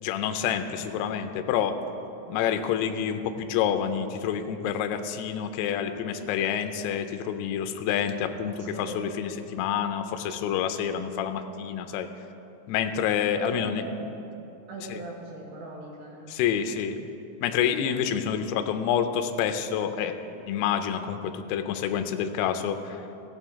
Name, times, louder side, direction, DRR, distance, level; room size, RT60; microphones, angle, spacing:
voice 1, 0.0-1.8 2.3-12.1 12.7-13.8 16.3-17.0 17.4-20.1 20.5-23.0, left 8 dB, 80° left, 7 dB, 2.4 m, -28 dB
voice 2, 13.3-14.0 14.7-16.3, right 2 dB, 75° right, -4 dB, 3.8 m, -39 dB
16.0 x 7.5 x 3.6 m, 2.8 s
omnidirectional pair, 5.0 m